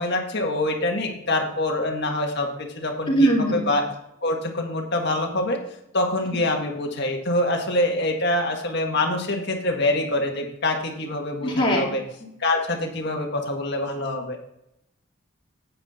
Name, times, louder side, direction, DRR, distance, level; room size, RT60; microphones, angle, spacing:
voice 1, 0.0-3.8 4.2-5.6 5.9-12.0 12.4-14.4, left 1 dB, 55° left, 2 dB, 1.7 m, -25 dB
voice 2, 3.1-3.6 11.4-11.8, right 1 dB, 25° left, -3 dB, 2.7 m, -20 dB
9.8 x 8.7 x 3.7 m, 0.80 s
head